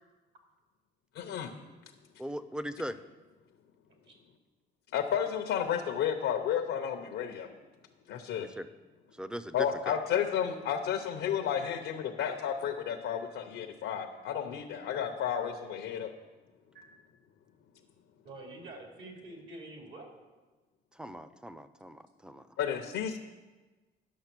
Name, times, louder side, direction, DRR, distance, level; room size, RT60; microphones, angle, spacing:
voice 1, 1.1-1.5 4.9-7.5 8.1-8.5 9.5-16.1 22.6-23.2, left 8 dB, 85° left, 4 dB, 0.7 m, -32 dB
voice 2, 2.2-3.0 8.6-8.7 9.2-10.0 20.9-22.5, equal, 5° right, 13 dB, 0.5 m, -39 dB
voice 3, 18.2-20.1, right 2 dB, 65° right, 1 dB, 2.5 m, -47 dB
10.0 x 6.5 x 6.0 m, 1.2 s
cardioid pair, 90°, 20 cm